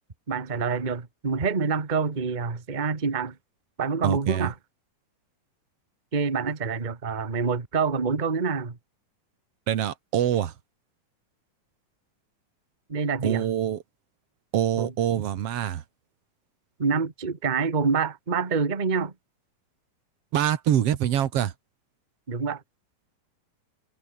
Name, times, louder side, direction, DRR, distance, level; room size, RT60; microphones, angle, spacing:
voice 1, 0.3-3.3 3.8-4.5 6.1-8.8 12.9-13.4 14.8-14.9 16.8-19.1 22.3-22.6, right 5 dB, 25° right, 1.0 m, -26 dB
voice 2, 4.0-4.5 9.7-10.5 13.2-13.8 14.5-15.8 20.3-21.5, right 10 dB, 55° right, 1.9 m, -25 dB
omnidirectional pair, 4.0 m